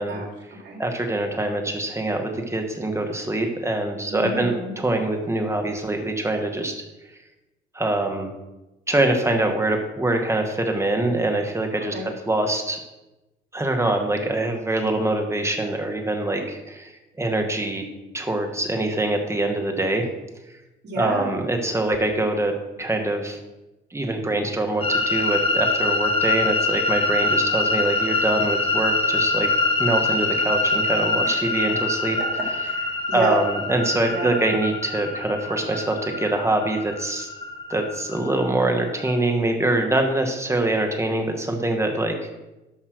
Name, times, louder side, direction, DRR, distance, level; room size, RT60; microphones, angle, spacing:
voice 1, 0.0-0.8 4.1-4.7 11.8-12.1 20.8-21.3 31.2-31.4 32.2-33.4 34.1-34.3, right 2 dB, 60° right, 0 dB, 3.6 m, -30 dB
voice 2, 0.8-6.8 7.7-8.3 8.9-12.8 13.5-17.8 18.1-20.1 20.9-22.5 22.8-23.4 23.9-29.5 29.8-32.2 33.1-37.3 37.7-42.3, right 2 dB, 15° right, 3 dB, 1.8 m, -24 dB
sound 1, 24.8-39.1, left 2 dB, 30° left, 1.4 m, -25 dB
12.0 x 5.5 x 6.3 m, 1.0 s
cardioid pair, 90°, 20 cm